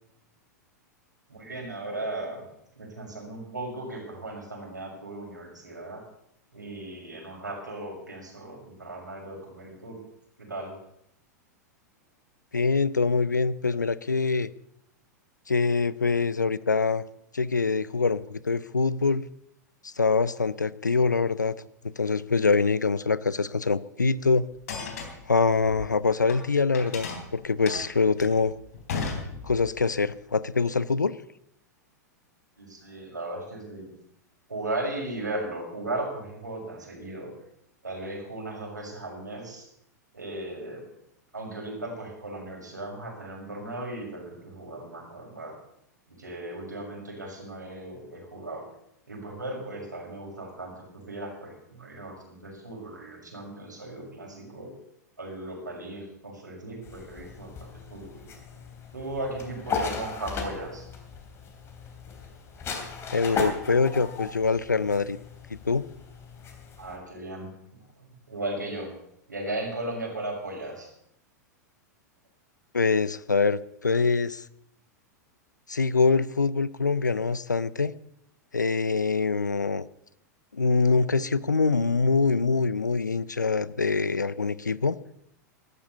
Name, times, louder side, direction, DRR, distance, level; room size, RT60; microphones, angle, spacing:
voice 1, 1.3-2.4 2.8-6.0 6.5-10.0 10.4-10.7 32.6-33.9 34.5-37.3 37.8-39.6 40.1-40.8 41.3-45.5 46.1-48.6 49.1-54.7 55.2-58.3 58.9-60.9 66.8-67.5 68.0-68.9 69.3-70.9, right 2 dB, 80° right, -1 dB, 6.3 m, -36 dB
voice 2, 12.5-14.5 15.5-17.0 17.3-19.2 19.8-21.5 22.0-24.5 25.3-28.5 29.4-31.1 63.1-65.2 65.5-65.8 72.7-74.4 75.7-77.9 78.5-79.8 80.5-85.0, left 4 dB, 80° left, 19 dB, 0.6 m, -24 dB
sound 1, 24.5-26.4 26.7-29.8, left 4 dB, 60° left, 3.5 m, -35 dB
sound 2, 56.8-67.0, left 5 dB, 25° left, 3.1 m, -37 dB
13.5 x 12.0 x 6.9 m, 0.75 s
figure-of-eight pair, 95°, 10 cm